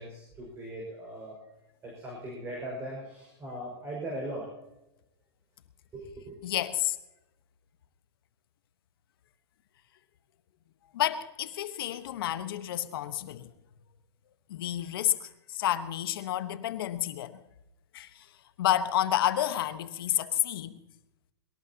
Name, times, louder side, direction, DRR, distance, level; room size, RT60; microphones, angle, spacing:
voice 1, 0.0-1.3 1.8-4.5 5.9-6.4, right 1 dB, 20° right, 5.6 m, -39 dB
voice 2, 6.4-7.0 10.9-13.5 14.5-17.4 17.9-18.2 18.6-20.8, left 12 dB, 60° left, 1.3 m, -30 dB
22.0 x 18.0 x 2.9 m
hypercardioid pair, 130°, 14 cm